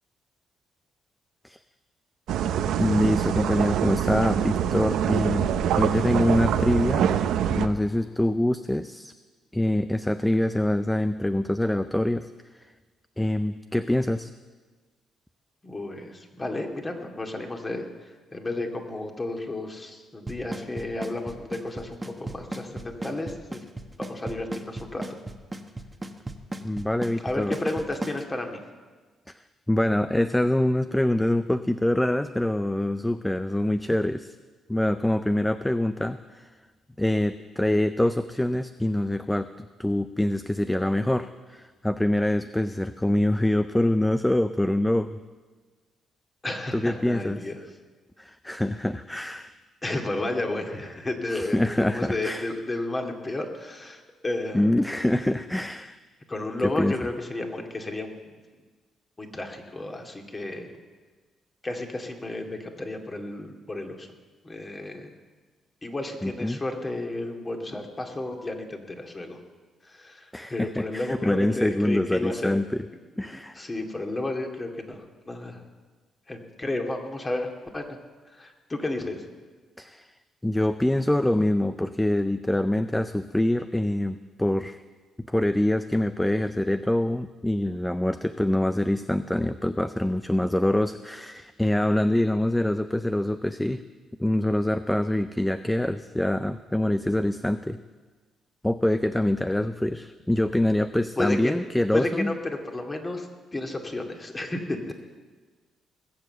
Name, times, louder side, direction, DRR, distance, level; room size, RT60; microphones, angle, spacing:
sound 1, 2.3-7.7, right 9 dB, 80° right, 0.8 m, -25 dB
voice 1, 2.8-7.1 7.5-9.1 9.5-12.3 13.2-14.3 26.6-27.5 29.7-34.4 34.7-36.5 37.0-45.2 46.7-47.4 48.2-49.5 51.3-52.4 54.5-56.0 56.8-56.9 66.2-66.6 70.3-72.7 73.2-73.6 79.8-80.1 80.4-84.8 85.3-93.8 94.2-97.8 98.6-102.3, left 1 dB, 5° left, 11 dB, 0.5 m, -25 dB
voice 2, 15.6-23.6 24.0-25.2 27.2-28.6 46.4-47.8 49.8-54.7 56.3-58.4 59.2-60.7 61.6-64.1 64.4-65.1 65.8-69.4 69.8-72.6 73.2-75.6 76.3-78.0 78.2-79.3 101.2-101.5 101.9-104.9, left 2 dB, 25° left, 3 dB, 2.2 m, -32 dB
Drum kit / Snare drum / Bass drum, 20.3-28.2, right 2 dB, 15° right, 1.2 m, -34 dB
20.0 x 7.6 x 7.7 m, 1.4 s
cardioid pair, 90°, 0 cm